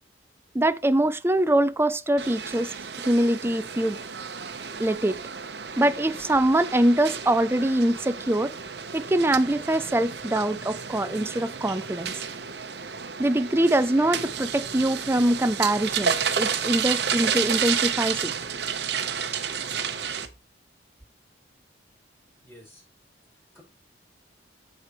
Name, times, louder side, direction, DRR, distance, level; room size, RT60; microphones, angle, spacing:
voice 1, 0.5-2.7 3.0-4.0 4.8-5.2 5.8-8.5 8.9-12.1 13.2-18.3, right 1 dB, 15° right, 0.5 m, -23 dB
sound 1, 2.2-20.3, right 7 dB, 60° right, 0.9 m, -31 dB
voice 2, 22.4-22.8 23.3-23.6, equal, 15° left, 5.1 m, -52 dB
14.5 x 4.9 x 3.1 m
head